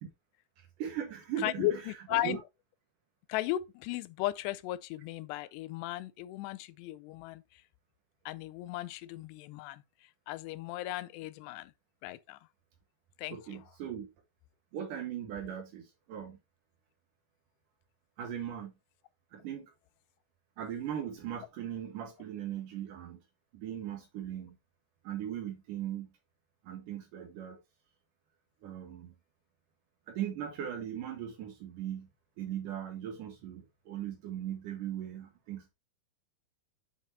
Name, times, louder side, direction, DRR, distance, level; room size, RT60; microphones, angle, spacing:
voice 1, 0.8-1.8 2.1-2.4 13.3-14.1 14.7-16.4 18.2-18.7 19.3-19.7 20.6-23.2 23.5-24.6 25.0-26.1 26.6-27.6 28.6-29.1 30.1-32.1 32.4-35.7, right 10 dB, 70° right, 2.2 m, -39 dB
voice 2, 1.4-2.4 3.3-7.4 8.3-9.8 10.3-11.7 12.0-12.4 13.2-13.6, left 16 dB, 85° left, 2.7 m, -36 dB
7.1 x 5.9 x 3.2 m
omnidirectional pair, 4.7 m